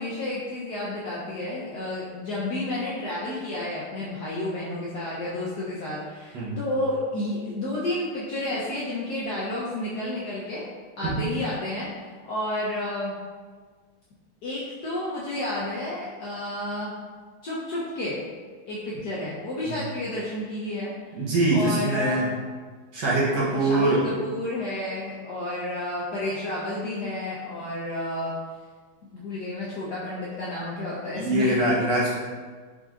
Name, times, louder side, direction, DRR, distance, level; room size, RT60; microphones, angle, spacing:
voice 1, 0.0-10.7 11.0-13.2 14.4-16.9 17.4-18.2 18.7-20.9 21.5-22.2 23.5-28.3 29.1-31.6, left 1 dB, 70° left, -6 dB, 1.0 m, -31 dB
voice 2, 21.1-22.3 22.9-24.1 31.1-32.1, right 2 dB, 60° right, -6 dB, 1.4 m, -23 dB
4.5 x 3.9 x 2.4 m, 1.5 s
omnidirectional pair, 2.4 m